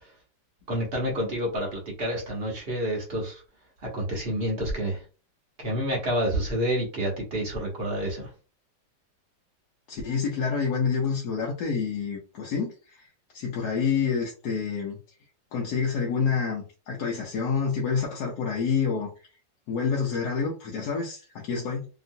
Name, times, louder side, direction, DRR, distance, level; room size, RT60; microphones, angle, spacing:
voice 1, 0.7-3.4 3.8-5.0 5.6-8.3, equal, 45° right, 0.9 m, -28 dB
voice 2, 9.9-13.1 13.3-15.0 15.5-19.1 19.7-21.9, left 6 dB, 65° left, 1.2 m, -28 dB
2.9 x 2.9 x 2.6 m
omnidirectional pair, 2.0 m